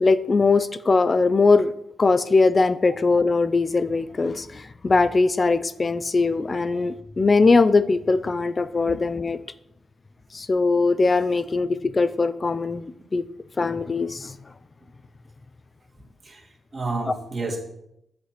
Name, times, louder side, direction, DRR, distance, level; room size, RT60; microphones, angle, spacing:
voice 1, 0.0-1.7 2.0-9.4 10.3-13.2 13.6-14.3, left 3 dB, 35° left, 14 dB, 0.4 m, -21 dB
voice 2, 16.2-17.6, right 3 dB, 40° right, 0 dB, 1.9 m, -31 dB
8.5 x 3.3 x 5.8 m, 0.79 s
cardioid pair, 85°, 0 cm